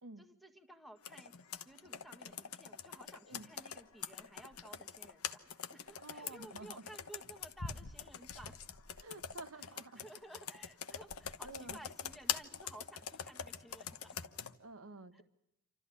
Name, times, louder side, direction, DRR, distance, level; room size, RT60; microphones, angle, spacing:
voice 1, 0.2-5.4 5.7-8.6 9.5-14.2 15.1-15.2, right 1 dB, ahead, 6 dB, 1.5 m, -55 dB
Computer keyboard, 1.0-14.5, left 8 dB, 80° left, 1.1 m, -44 dB
voice 2, 6.0-6.8 9.0-10.1 11.4-11.8 14.6-15.2, right 2 dB, 75° right, 11 dB, 1.3 m, -50 dB
28.0 x 13.5 x 9.9 m, 0.85 s
head